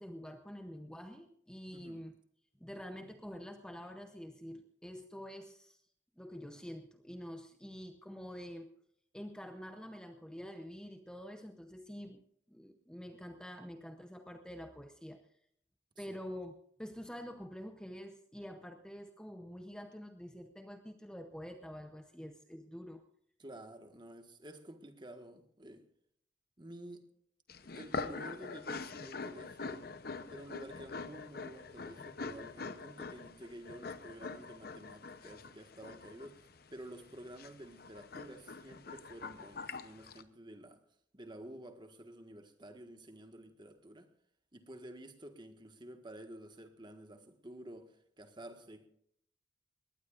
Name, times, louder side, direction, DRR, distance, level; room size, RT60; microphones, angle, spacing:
voice 1, 0.0-2.1 2.6-5.8 6.2-8.7 9.1-12.2 12.5-15.3 16.0-23.1, equal, 5° left, 0.8 m, -47 dB
voice 2, 23.4-25.8 26.6-27.0 27.7-29.9 30.3-40.8 41.1-44.1 44.5-48.9, right 1 dB, 25° right, 1.6 m, -51 dB
Dog Noises, 27.5-40.2, left 4 dB, 55° left, 0.8 m, -44 dB
21.0 x 18.5 x 2.5 m
head